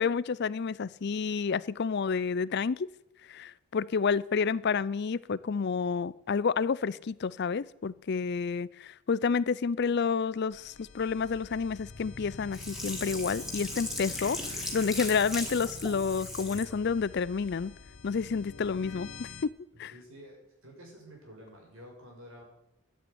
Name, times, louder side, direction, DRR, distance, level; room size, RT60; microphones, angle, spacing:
voice 1, 0.0-2.9 3.3-17.7 18.0-19.3 19.8-19.9, left 5 dB, 50° left, 20 dB, 0.4 m, -30 dB
sound 1, 10.5-19.5, left 3 dB, 75° left, 1.0 m, -46 dB
Sink (filling or washing), 12.5-16.7 17.2-17.3, left 1 dB, ahead, 2.5 m, -38 dB
voice 2, 19.9-22.4, equal, 75° right, 0 dB, 6.2 m, -50 dB
12.0 x 8.8 x 9.6 m, 0.86 s
head